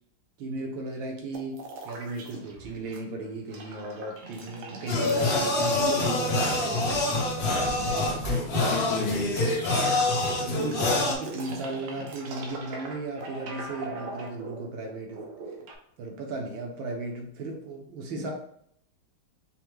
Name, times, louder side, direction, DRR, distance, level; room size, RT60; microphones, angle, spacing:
voice 1, 0.4-8.6 10.4-15.2 16.0-18.3, right 2 dB, 70° right, 1.4 m, -36 dB
sound 1, 1.3-3.0 3.3-15.8, right 3 dB, 90° right, 1.6 m, -41 dB
sound 2, 4.9-11.1, left 2 dB, 55° left, 1.1 m, -26 dB
voice 2, 8.5-9.4 18.2-18.3, left 3 dB, 80° left, 1.4 m, -32 dB
5.6 x 2.1 x 3.1 m
omnidirectional pair, 2.4 m